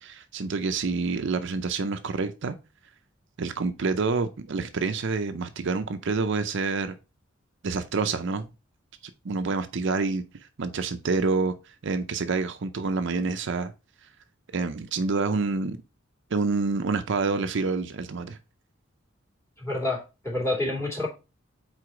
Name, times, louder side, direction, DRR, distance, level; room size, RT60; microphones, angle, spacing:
voice 1, 0.0-2.6 3.4-7.0 7.6-8.5 9.2-10.2 10.6-11.5 11.8-13.7 14.5-15.8 16.3-18.4, right 4 dB, 65° right, 0.5 m, -27 dB
voice 2, 19.6-21.1, left 2 dB, 15° left, 2.7 m, -28 dB
4.7 x 4.1 x 4.9 m
head